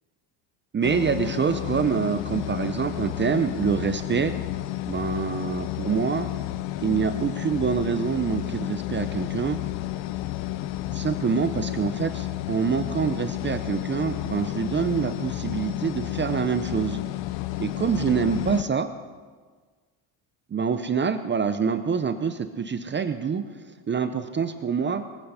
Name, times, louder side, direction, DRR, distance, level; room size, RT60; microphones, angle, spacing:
voice 1, 0.7-4.3 4.9-6.3 6.8-9.6 10.9-17.0 17.6-18.9 20.5-23.4 23.9-25.0, right 6 dB, 25° right, 9 dB, 0.6 m, -26 dB
sound 1, 0.8-18.6, left 15 dB, 70° left, 0.7 m, -31 dB
20.0 x 8.7 x 5.6 m, 1.5 s
cardioid pair, 125°, 46 cm